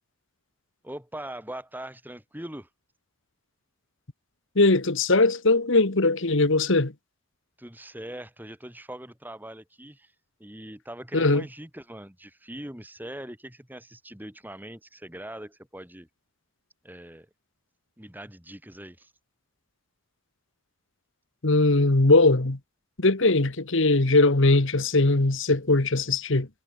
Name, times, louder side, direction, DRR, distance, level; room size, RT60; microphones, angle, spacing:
voice 1, 0.8-2.7 7.6-10.1 10.4-16.1 16.8-17.3 18.0-19.1, right 1 dB, 10° right, 3.5 m, -41 dB
voice 2, 4.5-6.9 11.1-11.4 21.4-22.6 23.0-26.5, left 2 dB, 60° left, 1.5 m, -20 dB
head